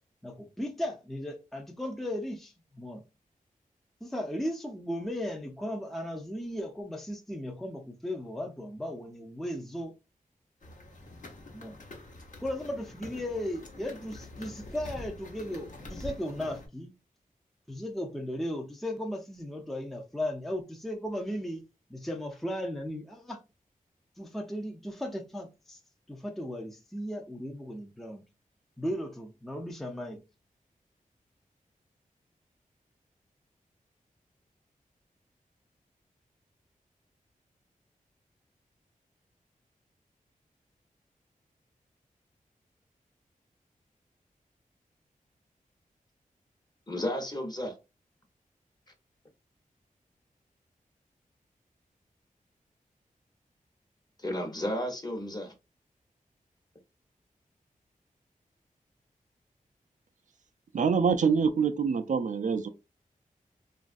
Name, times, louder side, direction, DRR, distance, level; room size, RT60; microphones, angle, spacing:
voice 1, 0.2-3.0 4.0-9.9 11.5-11.8 12.4-16.9 17.7-21.6 21.9-23.4 24.2-25.8 26.1-28.2 28.8-30.2, left 1 dB, ahead, 0.5 m, -36 dB
sound 1, 10.6-16.7, left 1 dB, 65° left, 0.9 m, -45 dB
voice 2, 46.9-47.7 54.2-55.5, left 1 dB, 30° left, 0.9 m, -33 dB
voice 3, 60.7-62.7, right 6 dB, 60° right, 0.4 m, -25 dB
3.0 x 2.4 x 2.4 m
wide cardioid pair, 80°, 14 cm